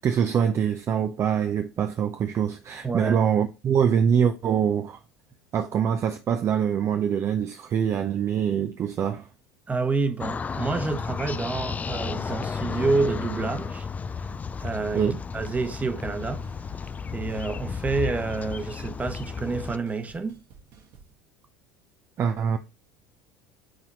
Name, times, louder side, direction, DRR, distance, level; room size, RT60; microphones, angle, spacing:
voice 1, 0.0-5.0 5.5-9.3 14.9-15.2 22.2-22.6, right 8 dB, 35° right, 0.6 m, -24 dB
voice 2, 2.8-3.2 9.7-13.9 14.6-15.0 15.3-16.4 17.1-20.4, right 4 dB, 15° right, 1.1 m, -28 dB
sound 1, 10.2-19.8, left 5 dB, 20° left, 0.4 m, -33 dB
sound 2, 14.3-14.4 14.7-15.1 15.3-21.1, right 5 dB, 50° right, 1.6 m, -53 dB
7.6 x 4.2 x 2.9 m
figure-of-eight pair, 70°, 8 cm